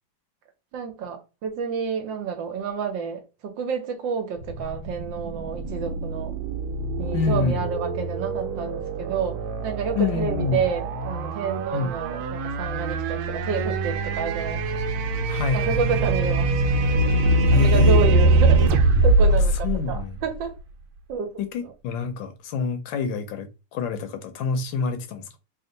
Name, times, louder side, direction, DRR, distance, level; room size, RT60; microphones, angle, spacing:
voice 1, 0.7-6.3 7.0-9.4 9.6-14.6 15.5-16.6 16.9-17.0 17.5-18.6 19.0-20.5 21.1-21.4, right 6 dB, 70° right, 1.4 m, -29 dB
sound 1, 4.4-20.6, right 2 dB, 85° right, 1.5 m, -23 dB
voice 2, 7.1-7.7 9.9-10.6 11.7-12.0 15.3-16.0 17.5-18.1 19.3-19.4 19.6-20.2 21.4-25.4, left 4 dB, 75° left, 1.3 m, -27 dB
3.5 x 2.5 x 3.8 m
omnidirectional pair, 2.3 m